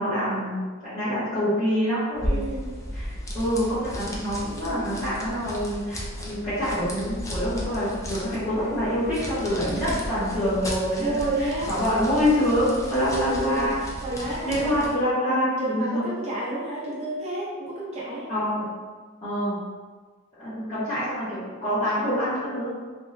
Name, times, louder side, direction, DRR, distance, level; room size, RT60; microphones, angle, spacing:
voice 1, 0.0-2.4 2.9-11.3 11.7-13.8 14.2-16.1 18.3-18.7 19.2-19.6 20.4-22.7, equal, 30° left, -16 dB, 1.2 m, -26 dB
sound 1, 2.1-15.0, equal, 15° left, 0.4 m, -35 dB
voice 2, 2.2-2.7 9.7-10.0 11.0-11.7 13.1-13.7 14.0-14.9 15.3-18.3, right 2 dB, 30° right, -6 dB, 0.6 m, -30 dB
2.9 x 2.9 x 2.6 m, 1.4 s
head